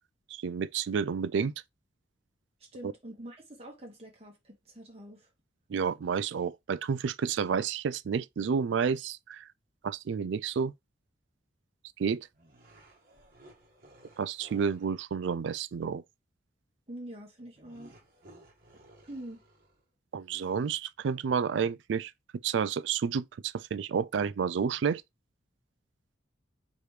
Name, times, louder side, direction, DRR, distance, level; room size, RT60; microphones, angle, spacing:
voice 1, 0.3-1.5 2.8-2.9 5.7-9.5 9.8-10.7 12.0-12.3 14.2-16.0 20.1-22.1 22.4-25.0, right 6 dB, 70° right, 0.3 m, -30 dB
voice 2, 2.7-5.3 16.9-17.9 19.1-19.4, right 1 dB, 30° right, 1.2 m, -45 dB
sound 1, 12.3-14.9 17.5-19.8, right 1 dB, 50° right, 1.2 m, -57 dB
5.0 x 3.0 x 3.2 m
head